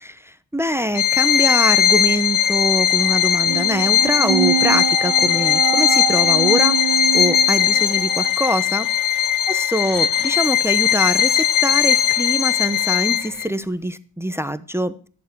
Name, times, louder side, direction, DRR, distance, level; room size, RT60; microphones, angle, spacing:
voice 1, 0.0-15.1, equal, 5° right, 14 dB, 0.9 m, -24 dB
Bowed string instrument, 1.0-13.5, left 9 dB, 90° left, 0.8 m, -18 dB
sound 1, 3.0-8.3, right 13 dB, 75° right, 0.6 m, -25 dB
17.0 x 7.4 x 4.7 m, 0.42 s
cardioid pair, 50°, 48 cm